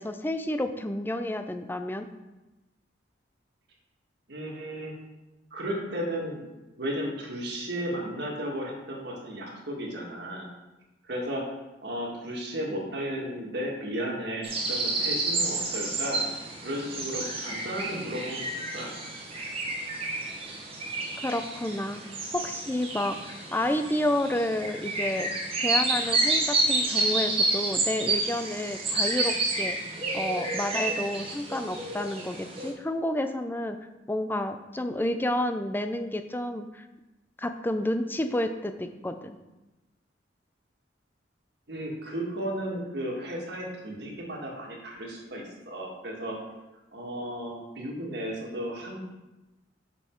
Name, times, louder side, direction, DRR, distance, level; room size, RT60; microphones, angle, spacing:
voice 1, 0.0-2.1 21.2-22.0 22.3-25.3 25.6-29.8 30.1-33.8 34.1-36.8 37.4-39.4, left 1 dB, 10° left, 8 dB, 0.4 m, -30 dB
voice 2, 4.3-4.9 5.5-6.4 6.8-10.5 11.0-11.4 11.8-16.2 16.6-18.9 41.7-46.4 46.9-49.2, equal, 65° right, -1 dB, 1.7 m, -34 dB
sound 1, 14.4-32.7, right 2 dB, 30° right, 1.2 m, -30 dB
6.4 x 5.6 x 4.5 m, 1.0 s
head